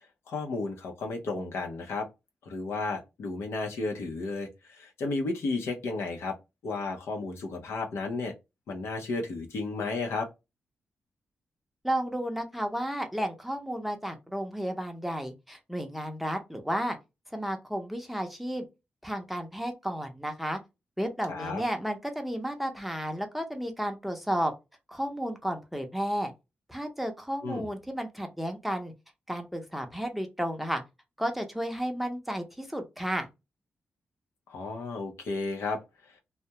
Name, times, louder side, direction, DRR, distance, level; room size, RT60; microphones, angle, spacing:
voice 1, 0.3-2.1 2.5-6.4 6.6-8.3 8.7-10.3 21.3-21.6 27.4-27.7 34.5-35.8, left 3 dB, 85° left, 0.6 m, -33 dB
voice 2, 11.8-17.0 17.3-18.7 19.0-20.6 21.0-24.5 24.9-26.3 26.7-28.9 29.3-30.8 31.2-33.3, equal, 5° right, 0.6 m, -32 dB
2.3 x 2.1 x 2.8 m
cardioid pair, 85°, 4 cm